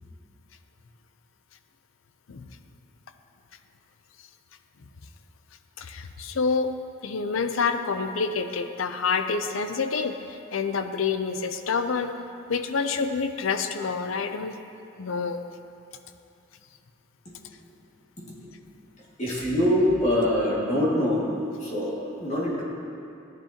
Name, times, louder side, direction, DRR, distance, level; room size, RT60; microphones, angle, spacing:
voice 1, 5.8-6.7 7.0-12.1 12.5-14.6 15.0-15.4, left 5 dB, 70° left, 8 dB, 0.6 m, -27 dB
voice 2, 19.2-22.6, left 1 dB, 35° left, -5 dB, 2.2 m, -24 dB
14.0 x 9.5 x 2.9 m, 2.6 s
head